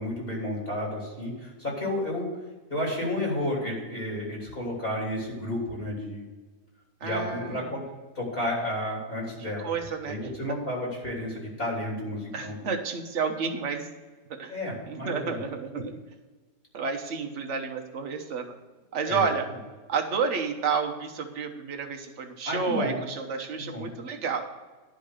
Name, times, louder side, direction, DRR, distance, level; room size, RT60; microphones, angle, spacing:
voice 1, 0.0-2.3 2.7-6.2 7.0-7.8 8.1-9.7 10.0-12.5 14.5-15.4 19.1-19.2 22.4-23.0 23.6-23.9, left 1 dB, 35° left, -3 dB, 3.3 m, -31 dB
voice 2, 7.0-7.6 9.4-10.2 12.3-13.9 14.4-14.5 14.9-15.8 16.7-18.5 18.9-19.4 19.9-24.5, right 5 dB, 50° right, 4 dB, 1.3 m, -30 dB
11.0 x 5.3 x 6.5 m, 1.3 s
omnidirectional pair, 1.8 m